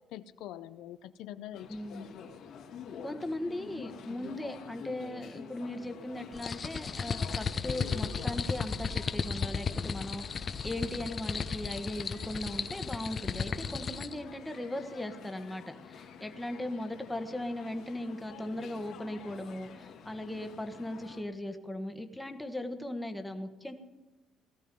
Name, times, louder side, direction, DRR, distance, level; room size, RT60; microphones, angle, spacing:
voice 1, 0.1-2.1, left 12 dB, 80° left, 12 dB, 0.5 m, -45 dB
sound 1, 1.5-21.2, left 6 dB, 65° left, 2.0 m, -49 dB
voice 2, 1.7-2.0 3.0-23.7, left 1 dB, 5° left, 6 dB, 1.3 m, -38 dB
sound 2, 6.3-14.2, left 5 dB, 35° left, 0.8 m, -35 dB
17.5 x 13.5 x 5.4 m, 1.2 s
cardioid pair, 115°, 0 cm